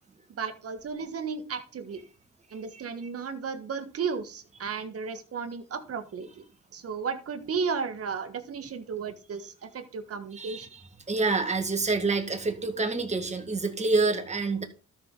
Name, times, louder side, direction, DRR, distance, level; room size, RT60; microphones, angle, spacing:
voice 1, 0.4-2.0 2.5-6.3 6.7-10.7, right 5 dB, 50° right, 8 dB, 1.5 m, -34 dB
voice 2, 10.3-14.6, right 3 dB, 25° right, 6 dB, 1.7 m, -27 dB
12.5 x 6.0 x 3.9 m, 0.36 s
cardioid pair, 90°, 30 cm